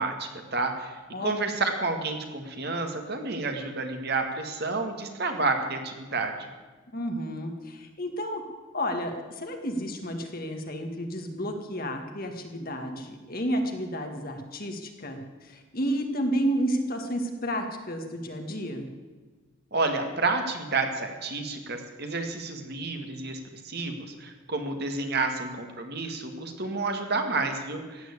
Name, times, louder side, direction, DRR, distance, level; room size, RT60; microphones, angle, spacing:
voice 1, 0.0-6.4 19.7-23.4 23.6-28.1, right 3 dB, 50° right, 5 dB, 1.8 m, -30 dB
voice 2, 6.9-8.4 8.7-18.9, equal, 45° left, 4 dB, 1.9 m, -31 dB
15.5 x 9.3 x 8.4 m, 1.3 s
head